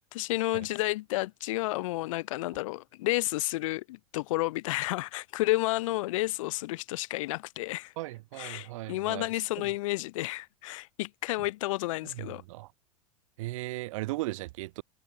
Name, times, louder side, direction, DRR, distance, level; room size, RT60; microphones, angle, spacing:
voice 1, 0.1-7.9 8.4-12.4, left 19 dB, 60° left, 2.1 m, -31 dB
voice 2, 8.0-9.3 9.6-9.7 12.0-12.7 13.4-14.8, right 19 dB, 60° right, 2.0 m, -37 dB
figure-of-eight pair, 85°, 19 cm